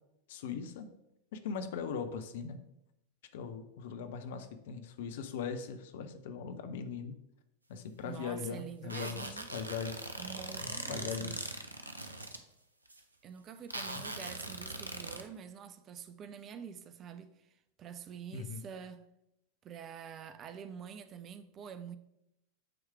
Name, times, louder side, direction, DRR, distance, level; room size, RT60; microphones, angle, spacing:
voice 1, 0.3-0.9 1.3-2.6 3.3-7.2 7.7-10.1 10.6-11.3 18.3-18.6, left 6 dB, 55° left, 0.7 m, -40 dB
voice 2, 8.0-9.5 10.2-11.4 13.2-19.0 19.6-22.0, right 7 dB, 30° right, 0.4 m, -47 dB
sound 1, 8.9-12.4 12.9-13.0 13.7-15.2, right 2 dB, 80° right, 0.6 m, -41 dB
8.7 x 3.2 x 4.7 m
figure-of-eight pair, 90°, 0 cm